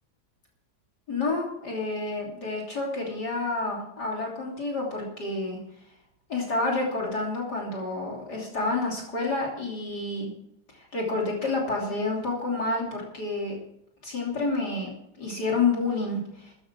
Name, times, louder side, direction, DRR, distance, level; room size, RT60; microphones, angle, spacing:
voice 1, 1.1-5.6 6.3-10.3 10.7-13.5 14.0-14.9 15.2-16.5, left 3 dB, 50° left, -2 dB, 3.6 m, -29 dB
14.0 x 10.0 x 6.2 m, 0.76 s
omnidirectional pair, 2.2 m